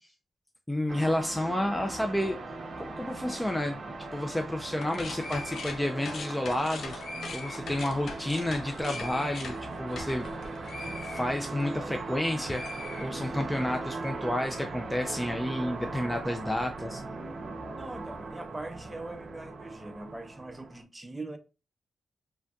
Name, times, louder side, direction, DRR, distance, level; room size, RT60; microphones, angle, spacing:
voice 1, 0.7-2.4 3.0-7.0 7.3-10.4 10.9-12.6 13.0-17.0, left 1 dB, 10° left, 0.4 m, -30 dB
sound 1, 0.9-20.8, right 3 dB, 60° right, 0.6 m, -39 dB
sound 2, 1.6-8.2, left 3 dB, 85° left, 1.3 m, -52 dB
sound 3, 4.8-12.2 12.5-13.6, left 4 dB, 70° left, 0.5 m, -41 dB
voice 2, 17.7-21.4, right 2 dB, 20° right, 0.8 m, -41 dB
3.3 x 2.5 x 2.3 m
cardioid pair, 55°, 0 cm